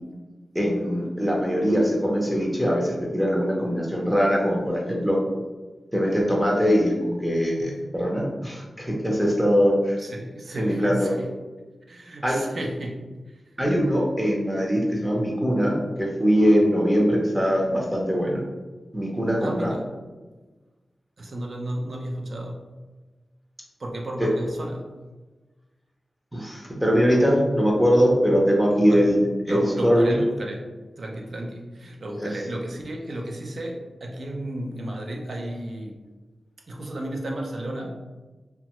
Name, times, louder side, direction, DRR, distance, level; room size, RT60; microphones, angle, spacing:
voice 1, 0.5-5.2 5.9-10.0 10.6-11.1 12.2-12.4 13.6-18.4 18.9-19.7 24.2-24.3 26.3-29.2 29.5-30.2 32.2-32.3, equal, 5° right, -2 dB, 0.5 m, -22 dB
voice 2, 10.0-11.3 11.9-13.4 19.4-19.9 21.2-22.6 23.8-24.9 28.8-29.1 29.5-30.7 31.0-36.0 36.7-38.0, right 1 dB, 55° right, 1 dB, 0.4 m, -33 dB
2.9 x 2.2 x 2.9 m, 1.2 s
wide cardioid pair, 140°, 0 cm